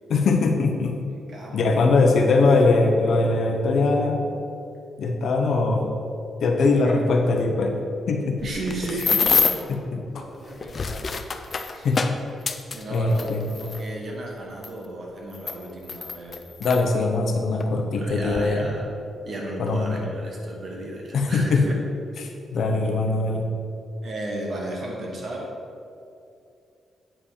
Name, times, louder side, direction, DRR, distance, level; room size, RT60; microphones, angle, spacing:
voice 1, 0.1-1.0 1.5-4.2 5.0-5.9 6.4-7.8 8.1-8.4 9.7-10.2 11.8-12.0 12.9-13.5 16.6-18.7 19.6-20.0 21.1-21.7 22.2-23.5, left 3 dB, 60° left, 3 dB, 0.9 m, -21 dB
voice 2, 1.3-1.8 6.8-7.0 8.4-9.5 10.1-11.1 11.7-11.9 12.7-16.5 17.9-18.9 19.3-21.8 24.0-25.5, right 1 dB, 45° right, -1 dB, 1.5 m, -34 dB
sound 1, 8.4-9.7 10.5-13.8 14.6-14.7 15.3-16.8 17.6-17.7 18.1-18.4, left 5 dB, 35° left, 0.4 m, -26 dB
8.7 x 5.4 x 5.0 m, 2.6 s
wide cardioid pair, 160°, 0 cm